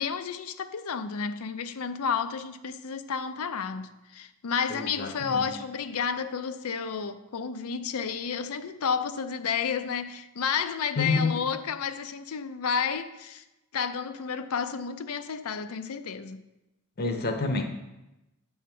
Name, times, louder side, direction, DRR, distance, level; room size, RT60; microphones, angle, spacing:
voice 1, 0.0-13.4 13.7-16.4, left 6 dB, 75° left, 0.5 m, -31 dB
voice 2, 4.7-5.5 11.0-11.4 17.0-17.6, left 3 dB, 45° left, 0.8 m, -28 dB
8.5 x 3.5 x 6.0 m
head